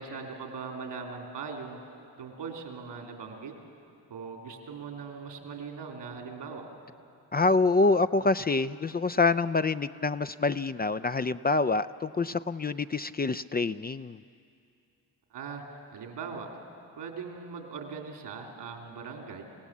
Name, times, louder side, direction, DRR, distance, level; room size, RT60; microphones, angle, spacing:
voice 1, 0.0-1.8 2.2-3.5 4.1-6.7 15.3-16.5 17.0-19.4, right 5 dB, 80° right, 2 dB, 3.1 m, -40 dB
voice 2, 7.3-14.2, left 3 dB, 25° left, 12 dB, 0.4 m, -26 dB
27.0 x 17.0 x 7.3 m, 2.5 s
supercardioid pair, 50°, 41 cm